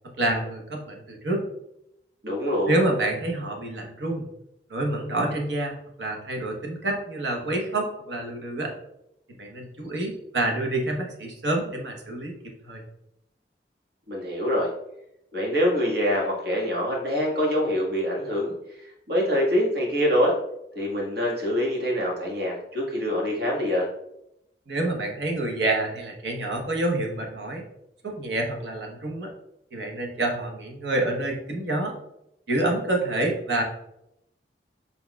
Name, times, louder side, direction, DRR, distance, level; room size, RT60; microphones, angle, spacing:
voice 1, 0.0-1.4 2.6-4.2 4.7-8.7 9.4-12.4 12.6-12.8 24.7-27.6 28.0-29.3 29.7-31.9 32.5-33.6, right 2 dB, 85° right, 1 dB, 1.0 m, -27 dB
voice 2, 2.2-2.8 14.1-14.7 15.3-20.3 20.8-23.9, equal, 65° right, -3 dB, 1.6 m, -25 dB
5.9 x 3.8 x 2.3 m, 0.82 s
head